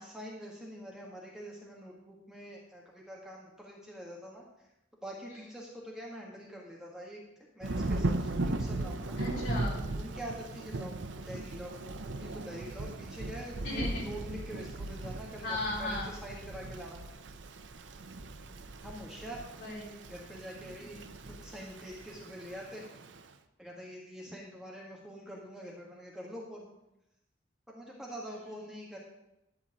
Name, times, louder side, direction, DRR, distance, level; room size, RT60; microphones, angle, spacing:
voice 1, 0.0-4.4 5.0-7.2 7.5-9.2 9.9-17.0 18.8-19.5 20.0-21.0 21.3-22.8 23.6-26.7 27.7-29.0, equal, 5° right, -3 dB, 1.6 m, -45 dB
Thunder / Rain, 7.6-23.2, right 2 dB, 75° right, 0.7 m, -38 dB
voice 2, 9.2-9.8 13.6-14.0 15.4-16.1 19.6-20.0, left 2 dB, 65° left, -5 dB, 4.0 m, -35 dB
11.5 x 4.4 x 8.2 m, 0.89 s
head